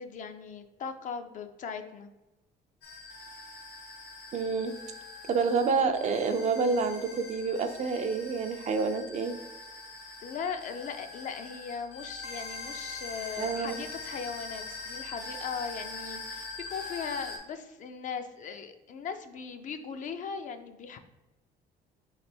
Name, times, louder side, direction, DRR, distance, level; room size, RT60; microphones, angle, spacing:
voice 1, 0.0-2.1 10.2-21.0, left 6 dB, 50° left, 8 dB, 0.4 m, -38 dB
sound 1, 2.8-17.4, left 3 dB, 80° left, 1.3 m, -43 dB
voice 2, 4.3-4.7 5.3-9.3 13.4-13.8, right 4 dB, 45° right, 8 dB, 0.4 m, -28 dB
3.3 x 3.2 x 4.3 m, 1.0 s
cardioid pair, 110°, 17 cm